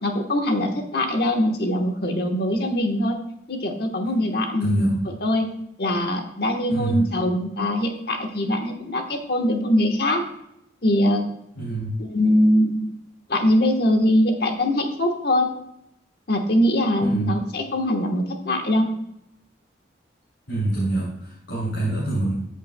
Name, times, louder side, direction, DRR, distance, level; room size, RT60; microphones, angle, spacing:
voice 1, 0.0-3.2 3.5-5.5 5.8-10.2 10.8-11.2 12.0-12.8 13.3-15.5 16.3-18.9, left 1 dB, 55° left, 4 dB, 1.2 m, -22 dB
voice 2, 4.6-4.9 6.7-7.1 11.6-11.9 17.0-17.3 20.5-22.3, right 2 dB, 80° left, -7 dB, 3.0 m, -25 dB
13.5 x 6.6 x 2.2 m, 0.78 s
head